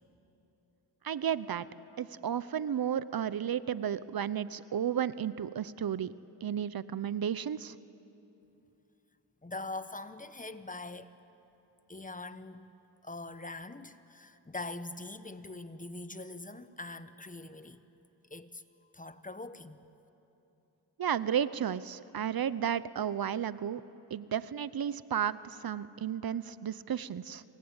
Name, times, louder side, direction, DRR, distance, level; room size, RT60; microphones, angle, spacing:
voice 1, 1.0-1.7 2.0-6.1 6.4-7.8 21.0-23.8 24.1-27.4, right 9 dB, 55° right, 16 dB, 0.8 m, -33 dB
voice 2, 9.4-11.2 11.9-12.7 13.0-17.8 18.3-18.6 18.9-19.8, left 2 dB, 20° left, 12 dB, 1.2 m, -43 dB
28.0 x 23.5 x 8.9 m, 3.0 s
cardioid pair, 65°, 43 cm